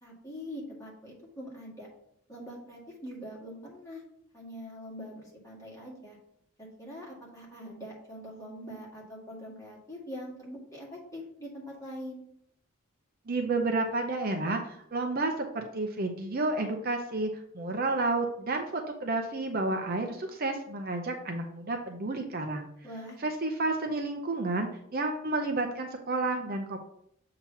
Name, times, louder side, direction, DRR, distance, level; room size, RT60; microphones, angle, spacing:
voice 1, 0.0-1.9 2.3-4.0 4.3-6.2 6.6-12.2 22.8-23.2, equal, 15° left, -5 dB, 2.0 m, -43 dB
voice 2, 13.3-17.3 17.5-22.7 23.2-26.8, right 2 dB, 45° right, 4 dB, 0.6 m, -31 dB
7.2 x 2.9 x 5.9 m, 0.71 s
head